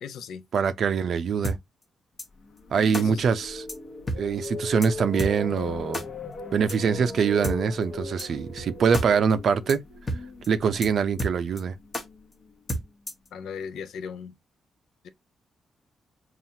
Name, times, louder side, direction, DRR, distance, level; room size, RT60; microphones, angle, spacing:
voice 1, 0.0-0.4 3.0-3.3 13.3-14.4 15.0-15.1, left 6 dB, 80° left, 0.6 m, -37 dB
voice 2, 0.5-1.6 2.7-3.6 4.2-6.0 6.5-9.8 10.5-11.7, right 6 dB, 55° right, 0.5 m, -24 dB
sound 1, 1.4-1.6 2.2-2.3 2.9-3.0 3.7-3.8 4.1-4.2 4.4-4.5 4.8-4.9 5.2-5.3 5.9-6.0 6.7-6.8 7.4-7.6 8.2-8.3 8.6-8.7 8.9-9.1 9.3-9.4 9.7-9.8 10.1-10.2 10.4-10.5 10.8-10.9 11.2-11.6 11.9-12.0 12.7-13.3, equal, 20° left, 0.8 m, -30 dB
sound 2, 2.4-12.5, left 2 dB, 50° left, 0.9 m, -38 dB
5.7 x 2.4 x 2.7 m
wide cardioid pair, 155°, 0 cm